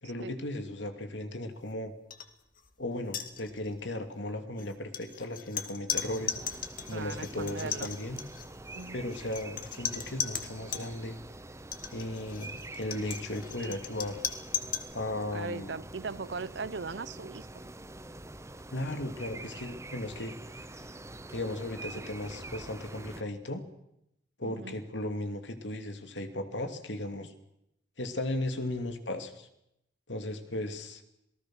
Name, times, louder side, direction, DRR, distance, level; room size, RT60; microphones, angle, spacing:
voice 1, 0.0-1.9 2.8-8.2 8.9-11.2 11.9-14.2 14.9-15.8 18.7-20.3 21.3-23.6 24.4-27.3 28.0-29.5 30.1-31.0, left 1 dB, 85° left, 7 dB, 2.9 m, -36 dB
sound 1, 2.1-2.3 2.6-2.7 3.0-3.8 4.6-10.9 11.6-14.9, left 9 dB, 50° left, 2.2 m, -37 dB
sound 2, 5.9-23.2, right 2 dB, 15° right, 1.0 m, -46 dB
voice 2, 6.9-7.9 8.7-9.2 15.3-17.5 24.4-24.8, right 4 dB, 70° right, 19 dB, 0.8 m, -39 dB
27.5 x 19.0 x 6.3 m, 0.81 s
head